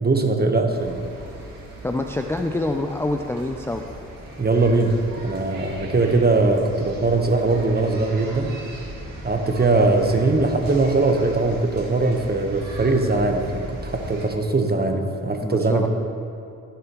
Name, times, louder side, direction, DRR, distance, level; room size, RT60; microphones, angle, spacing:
voice 1, 0.0-1.0 4.4-8.5 9.2-15.9, right 3 dB, 30° right, 4 dB, 1.1 m, -21 dB
sound 1, 0.7-14.3, right 1 dB, 85° right, 1.7 m, -38 dB
voice 2, 1.8-3.8 15.4-15.9, left 2 dB, 10° left, 4 dB, 0.4 m, -26 dB
14.5 x 7.0 x 3.0 m, 2.6 s
cardioid pair, 65°, 33 cm